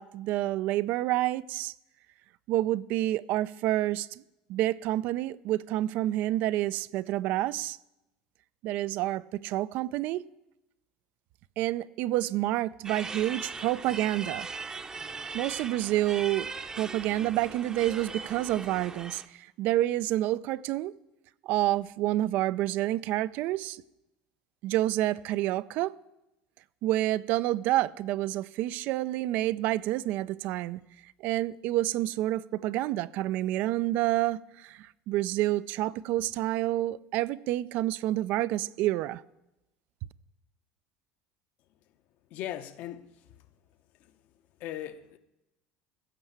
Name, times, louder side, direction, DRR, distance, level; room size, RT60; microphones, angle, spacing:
voice 1, 0.0-1.7 2.5-4.2 4.5-7.8 8.6-10.2 11.6-14.5 15.3-16.5 16.8-20.9 21.4-23.8 24.6-25.9 26.8-30.8 31.2-39.2, right 15 dB, 65° right, 0.4 m, -28 dB
sound 1, 12.8-19.3, right 4 dB, 20° right, 0.7 m, -39 dB
voice 2, 42.3-43.0 44.6-45.2, left 12 dB, 60° left, 0.8 m, -38 dB
15.0 x 5.5 x 7.3 m
supercardioid pair, 110°, 3 cm